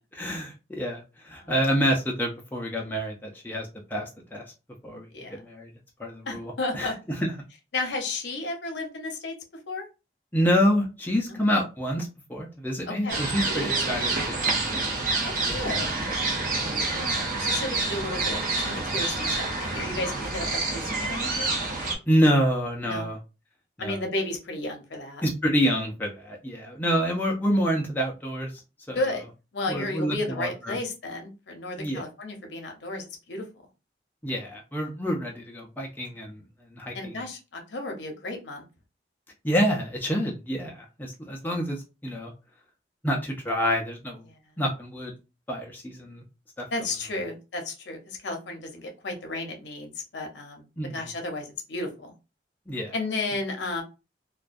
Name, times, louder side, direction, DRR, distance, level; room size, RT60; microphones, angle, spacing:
voice 1, 0.1-4.4 4.8-5.7 6.0-7.3 10.3-14.1 14.4-14.9 15.2-15.9 16.6-16.7 22.1-23.2 23.8-24.0 25.2-28.5 28.9-29.0 29.7-30.8 31.8-32.0 34.2-36.4 36.7-37.2 39.4-42.3 43.0-44.2 44.6-45.1 45.5-46.2 46.6-46.7 50.8-51.1 52.7-52.9, equal, 10° left, -1 dB, 0.4 m, -27 dB
voice 2, 6.3-6.9 7.7-9.3 9.7-9.9 11.3-11.4 12.9-13.2 15.2-15.9 16.9-21.6 22.8-23.1 23.8-25.2 28.9-29.3 29.5-33.5 36.9-38.7 44.3-44.4 46.7-50.7 50.9-52.1 52.9-53.8, left 2 dB, 75° left, 3 dB, 0.7 m, -33 dB
sound 1, 13.1-21.9, right 3 dB, 45° right, 0.6 m, -28 dB
2.3 x 2.2 x 2.5 m, 0.28 s
head